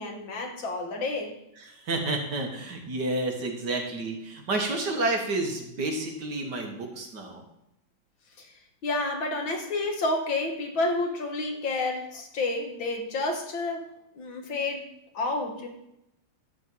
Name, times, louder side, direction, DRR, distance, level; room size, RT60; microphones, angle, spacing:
voice 1, 0.0-1.3 8.4-8.5 8.8-13.9 14.1-14.9 15.1-15.7, left 2 dB, 65° left, 3 dB, 2.2 m, -30 dB
voice 2, 1.8-7.4, right 2 dB, 55° right, 2 dB, 2.1 m, -30 dB
12.5 x 4.5 x 7.8 m, 0.82 s
omnidirectional pair, 2.3 m